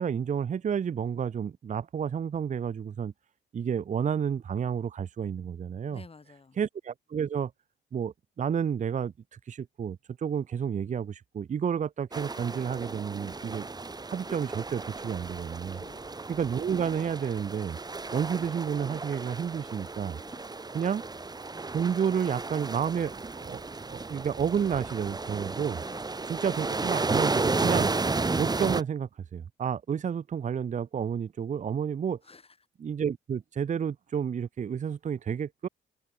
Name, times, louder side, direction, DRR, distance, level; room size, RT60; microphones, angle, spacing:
voice 1, 0.0-3.1 3.5-6.0 6.6-7.5 7.9-9.1 9.5-13.7 14.1-15.8 16.3-17.8 18.1-20.2 20.7-21.0 21.7-25.8 26.3-27.9 28.4-32.2 32.8-35.7, right 7 dB, 40° right, 0.7 m, -30 dB
voice 2, 5.9-6.6 15.7-16.1 20.2-20.5 25.9-26.1 32.2-32.6, left 4 dB, 30° left, 7.7 m, -51 dB
sound 1, 12.1-28.8, right 3 dB, 20° right, 1.6 m, -33 dB
cardioid pair, 90°, 20 cm